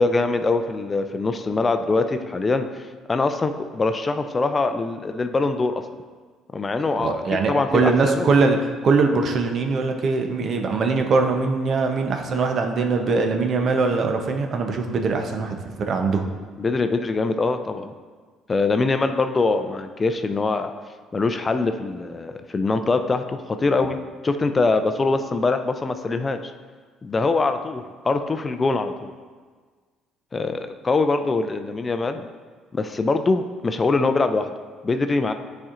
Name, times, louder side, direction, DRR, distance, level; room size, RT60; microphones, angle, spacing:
voice 1, 0.0-5.8 6.5-7.2 7.5-8.3 16.6-17.9 18.5-20.7 21.1-24.0 24.2-26.5 27.0-29.1 30.3-32.2 32.7-34.5 34.8-35.3, left 3 dB, 30° left, 8 dB, 0.4 m, -23 dB
voice 2, 7.0-8.6 8.8-16.2, right 4 dB, 50° right, 4 dB, 0.6 m, -22 dB
9.5 x 4.3 x 2.5 m, 1.5 s
cardioid pair, 90°, 0 cm